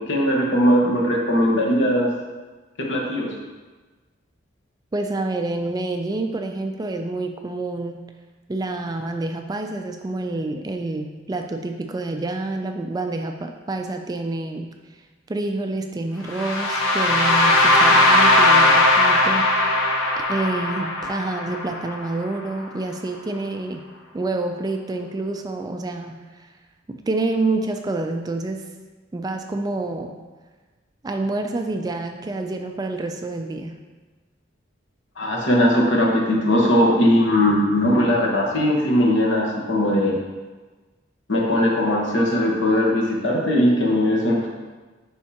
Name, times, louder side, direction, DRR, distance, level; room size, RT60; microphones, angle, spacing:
voice 1, 0.0-2.1 2.8-3.3 35.2-40.2 41.3-44.5, left 1 dB, 65° left, -2 dB, 1.3 m, -19 dB
voice 2, 4.9-8.0 8.5-14.7 15.3-19.7 20.3-23.8 24.1-26.5 26.9-28.7 29.1-30.2 31.0-33.8, right 2 dB, 20° right, 5 dB, 0.3 m, -28 dB
sound 1, 16.3-22.2, left 2 dB, 85° left, 1.0 m, -18 dB
10.5 x 3.6 x 2.9 m, 1.3 s
head